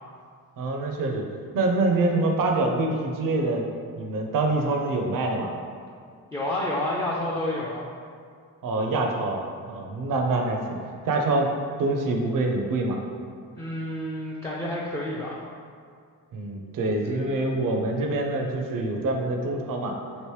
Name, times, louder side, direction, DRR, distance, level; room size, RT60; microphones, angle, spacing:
voice 1, 0.6-1.3 1.5-3.7 4.0-5.6 8.6-9.4 9.7-10.6 11.0-11.5 11.8-13.0 16.3-20.0, right 2 dB, 60° right, 2 dB, 0.5 m, -25 dB
voice 2, 6.3-7.9 13.6-15.4 17.0-17.5, left 1 dB, 10° left, -5 dB, 0.3 m, -30 dB
3.0 x 2.9 x 3.1 m, 2.2 s
cardioid pair, 70°, 37 cm